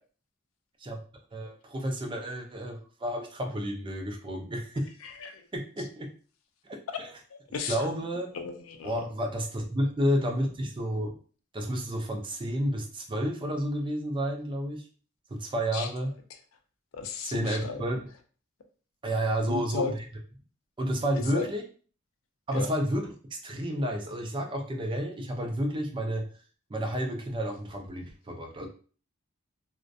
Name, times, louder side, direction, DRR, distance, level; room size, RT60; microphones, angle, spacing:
voice 1, 1.3-4.9 5.5-6.1 7.0-7.1 7.7-8.3 8.8-11.1 11.5-14.8 15.3-16.1 17.2-18.1 19.0-20.1 20.8-21.6 22.5-23.1 23.4-26.3 26.7-28.7, equal, 25° right, 2 dB, 0.4 m, -30 dB
voice 2, 5.0-5.4 7.3-7.8 8.3-8.9 15.7-15.9 16.9-17.8 19.4-19.9 21.3-21.5 22.5-22.7, left 4 dB, 70° left, 6 dB, 0.4 m, -34 dB
2.4 x 2.1 x 2.5 m, 0.40 s
head